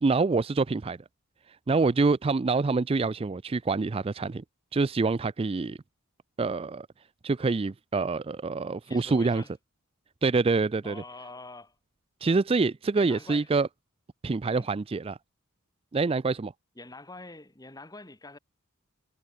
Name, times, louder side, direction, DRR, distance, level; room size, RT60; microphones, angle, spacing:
voice 1, 0.0-1.0 1.7-4.4 4.7-5.8 6.4-6.9 7.2-9.4 10.2-11.0 12.2-13.7 14.2-15.2 15.9-16.5, right 3 dB, 25° right, 0.4 m, -26 dB
voice 2, 8.8-9.5 10.8-11.7 12.9-13.5 14.5-14.7 16.7-18.4, left 2 dB, 15° left, 1.8 m, -45 dB
head